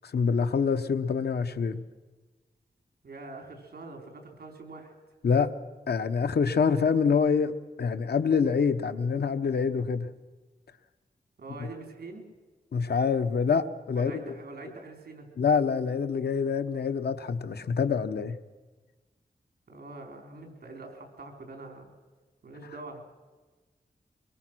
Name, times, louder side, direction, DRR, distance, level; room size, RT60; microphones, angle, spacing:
voice 1, 0.1-1.8 5.2-5.5 5.9-7.5 7.8-10.1 12.7-14.2 15.4-18.4, left 5 dB, 90° left, 10 dB, 1.1 m, -26 dB
voice 2, 3.0-4.9 11.4-12.3 13.9-15.3 19.7-21.9 22.4-23.0, right 3 dB, 70° right, 3 dB, 4.4 m, -44 dB
24.0 x 22.5 x 6.3 m, 1.3 s
wide cardioid pair, 105°, 16 cm